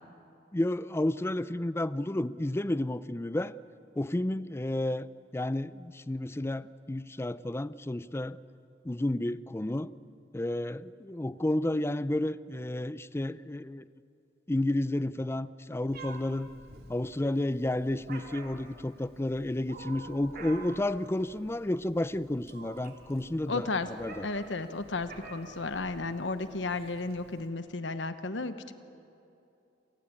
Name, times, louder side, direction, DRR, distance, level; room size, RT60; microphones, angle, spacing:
voice 1, 0.5-3.5 4.0-5.1 5.3-8.4 8.8-9.9 10.3-13.8 14.5-16.5 16.9-23.7 24.0-24.3, left 1 dB, 15° left, 16 dB, 0.5 m, -31 dB
Meow, 15.9-27.5, right 3 dB, 60° right, 2.9 m, -49 dB
voice 2, 23.5-23.9 24.2-28.7, left 3 dB, 85° left, 10 dB, 1.1 m, -33 dB
27.0 x 19.0 x 8.6 m, 2.8 s
head